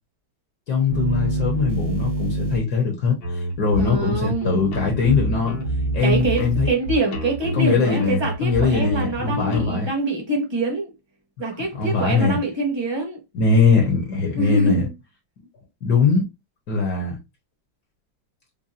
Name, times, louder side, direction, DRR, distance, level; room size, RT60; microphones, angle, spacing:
voice 1, 0.7-5.6 5.9-6.7 7.5-9.9 11.7-12.4 13.3-14.9 15.8-16.2 16.7-17.2, left 4 dB, 60° left, 1.4 m, -21 dB
sound 1, 0.9-2.6 4.6-6.7, right 2 dB, 80° right, 2.1 m, -28 dB
sound 2, 3.2-9.7, right 1 dB, 80° left, 2.0 m, -28 dB
voice 2, 3.8-4.7 5.3-5.4 6.0-10.9 11.4-13.2 14.3-14.9, right 2 dB, 20° right, 0.9 m, -25 dB
5.4 x 2.2 x 2.5 m
omnidirectional pair, 2.2 m